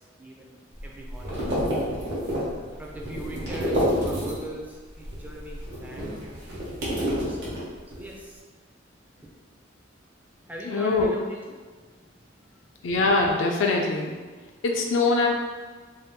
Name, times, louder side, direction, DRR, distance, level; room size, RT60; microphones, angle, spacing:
voice 1, 0.0-1.3 2.8-6.1 7.1-7.5 7.9-8.4 9.2-9.3 10.4-11.4 11.8-11.9 12.2-12.7, right 1 dB, 10° right, -2 dB, 0.3 m, -41 dB
sound 1, 0.7-4.6 4.9-8.1, equal, 65° right, 0.9 m, -29 dB
voice 2, 10.6-11.1 12.8-14.2 14.6-15.3, left 3 dB, 75° left, 0 dB, 0.4 m, -23 dB
2.7 x 2.2 x 3.4 m, 1.5 s
head